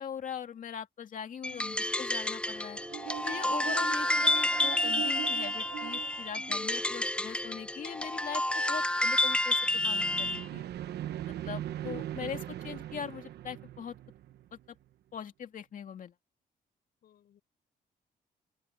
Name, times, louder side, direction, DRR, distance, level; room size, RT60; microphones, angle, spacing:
voice 1, 0.0-2.8 3.2-10.7 11.3-13.9 15.1-16.1, left 7 dB, 55° left, 2.3 m, -41 dB
sound 1, 1.4-10.5, left 1 dB, 5° left, 0.7 m, -30 dB
sound 2, 2.7-7.1 9.7-14.6, right 13 dB, 85° right, 1.1 m, -41 dB
voice 2, 6.9-7.3 10.9-11.9 17.0-17.4, left 10 dB, 70° left, 7.2 m, -65 dB
open air
cardioid pair, 120°, 17 cm